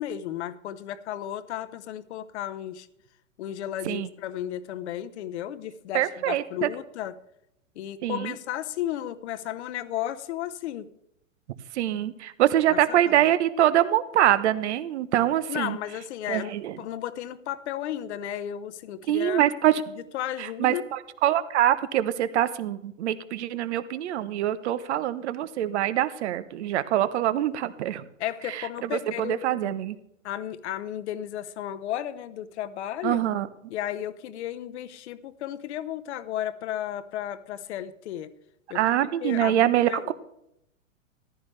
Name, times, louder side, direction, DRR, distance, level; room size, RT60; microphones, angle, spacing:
voice 1, 0.0-2.9 3.4-7.1 7.7-10.9 15.5-16.5 16.8-19.4 20.1-20.8 28.2-29.7 30.2-33.2 33.7-38.3 38.7-38.8 39.2-40.1, left 11 dB, 55° left, 13 dB, 1.0 m, -34 dB
voice 2, 5.9-6.7 8.0-8.3 11.7-15.8 16.3-16.8 19.1-19.8 20.4-28.1 28.4-30.0 33.0-33.5 38.7-40.1, right 12 dB, 55° right, 14 dB, 1.0 m, -24 dB
14.5 x 11.5 x 3.3 m, 0.77 s
hypercardioid pair, 120°, 40 cm